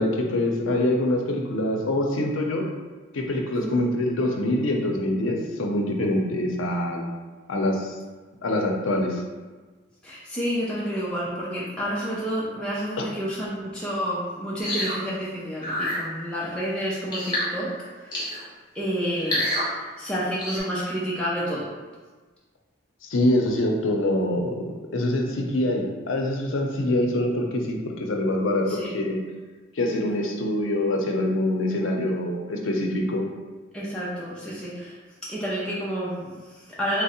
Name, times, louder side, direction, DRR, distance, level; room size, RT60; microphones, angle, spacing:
voice 1, 0.0-2.7 3.1-7.0 7.5-8.0 8.4-9.2 13.0-13.1 23.0-29.2 29.8-33.3, left 1 dB, 85° left, 1 dB, 0.6 m, -25 dB
voice 2, 10.0-18.2 18.7-21.7 28.7-29.0 33.7-37.0, equal, 5° left, -8 dB, 0.4 m, -30 dB
sound 1, 14.6-15.0 15.6-16.0 17.1-17.5 18.1-18.4 19.2-19.7 20.4-20.6, left 1 dB, 20° left, 1.1 m, -27 dB
3.5 x 2.0 x 4.1 m, 1.3 s
head